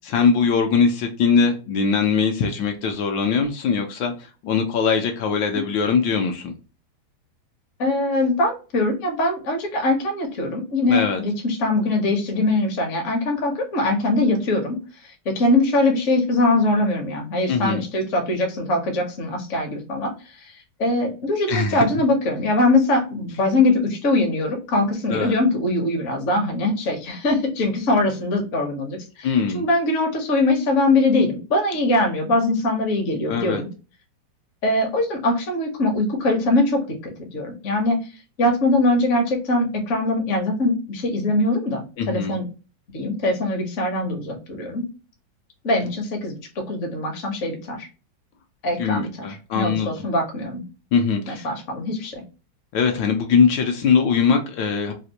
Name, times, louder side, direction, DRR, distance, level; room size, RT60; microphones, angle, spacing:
voice 1, 0.0-6.5 10.9-11.2 17.5-17.8 21.5-22.0 25.1-25.4 29.2-29.7 33.3-33.6 42.0-42.4 45.8-45.9 48.8-49.9 50.9-51.5 52.7-54.9, left 5 dB, 75° left, 4 dB, 1.2 m, -21 dB
voice 2, 7.8-14.8 15.0-20.1 20.8-29.3 29.5-33.7 34.6-38.0 38.4-42.5 42.9-44.8 45.6-46.4 46.7-47.9 48.6-49.1 49.5-50.6 51.3-52.2, left 2 dB, 55° left, 2 dB, 0.9 m, -22 dB
3.5 x 2.4 x 2.8 m, 0.34 s
omnidirectional pair, 2.1 m